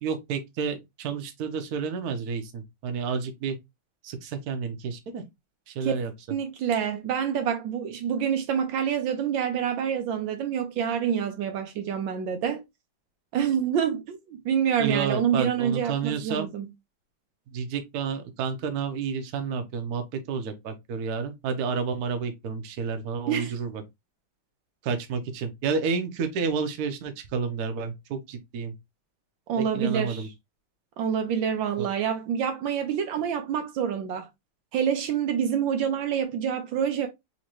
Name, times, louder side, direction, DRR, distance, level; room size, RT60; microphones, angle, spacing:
voice 1, 0.0-3.6 4.0-5.2 5.7-6.1 14.8-16.5 17.5-23.8 24.8-28.7 29.6-30.3 31.8-31.9, right 5 dB, 60° right, 1.1 m, -30 dB
voice 2, 6.3-12.6 13.3-16.7 23.3-23.5 29.5-30.3 31.0-34.3 34.7-37.1, right 8 dB, 75° right, 1.3 m, -27 dB
4.2 x 2.9 x 2.9 m
omnidirectional pair, 2.2 m